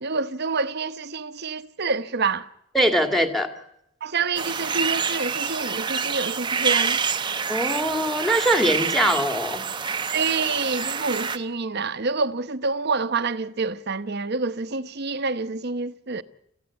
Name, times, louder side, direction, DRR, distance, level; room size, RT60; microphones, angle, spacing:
voice 1, 0.0-2.5 4.0-7.0 10.1-16.2, right 4 dB, 50° right, 1.0 m, -27 dB
voice 2, 2.7-3.5 7.5-9.7, right 1 dB, ahead, 2.0 m, -22 dB
sound 1, 4.4-11.4, right 6 dB, 20° right, 0.8 m, -27 dB
26.0 x 15.5 x 8.2 m
head